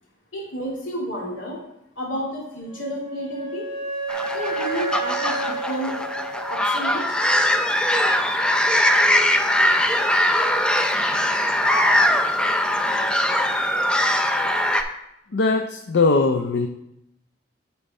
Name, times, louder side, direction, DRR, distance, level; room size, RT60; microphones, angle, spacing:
voice 1, 0.3-1.6 2.0-3.7 4.3-6.0 6.5-7.2, equal, 80° left, -4 dB, 2.7 m, -31 dB
Wind instrument woodwind instrument, 2.6-7.3, right 3 dB, 35° right, 2.4 m, -31 dB
sound 1, 4.1-14.8, left 1 dB, 5° left, 0.5 m, -21 dB
voice 2, 15.3-16.7, left 3 dB, 65° left, 5 dB, 0.5 m, -20 dB
8.7 x 4.5 x 4.2 m, 0.83 s
head